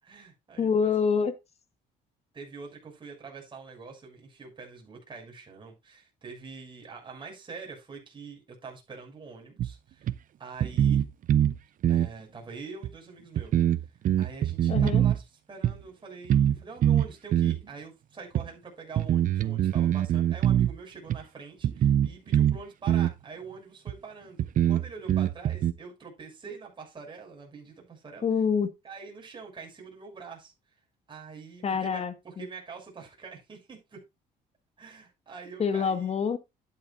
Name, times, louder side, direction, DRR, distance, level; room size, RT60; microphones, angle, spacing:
voice 1, 0.0-0.9 2.3-10.1 10.4-11.0 11.9-13.5 14.2-28.2 28.8-30.5 31.1-34.0 34.8-36.1, right 4 dB, 30° right, 6.5 m, -45 dB
voice 2, 0.6-1.3 14.7-15.1 28.2-28.7 31.6-32.4 35.6-36.4, left 6 dB, 40° left, 1.7 m, -26 dB
sound 1, 9.6-9.7 10.1-10.2 10.6-11.6 11.8-12.1 12.8-12.9 13.4-15.2 15.6-15.7 16.3-16.6 16.8-17.6 18.4-18.5 19.0-20.7 21.1-21.2 21.6-22.6 22.9-23.1 23.9-24.0 24.4-25.7, right 10 dB, 50° right, 0.8 m, -23 dB
11.5 x 10.5 x 2.6 m
cardioid pair, 110°, 17 cm